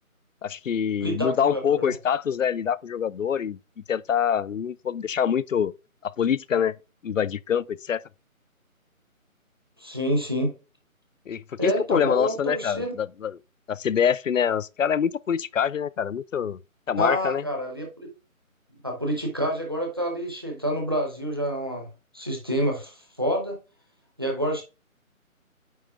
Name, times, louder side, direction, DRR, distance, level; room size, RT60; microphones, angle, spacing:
voice 1, 0.4-3.6 3.9-5.7 6.0-6.7 7.0-8.0 11.3-13.4 13.7-16.6 16.9-17.5, left 8 dB, 65° left, 0.5 m, -25 dB
voice 2, 1.0-1.9 9.8-10.5 11.6-12.9 17.0-18.1 18.8-21.9 22.1-23.6 24.2-24.6, equal, 15° right, 0.9 m, -28 dB
9.2 x 3.1 x 4.7 m
figure-of-eight pair, 170°, 43 cm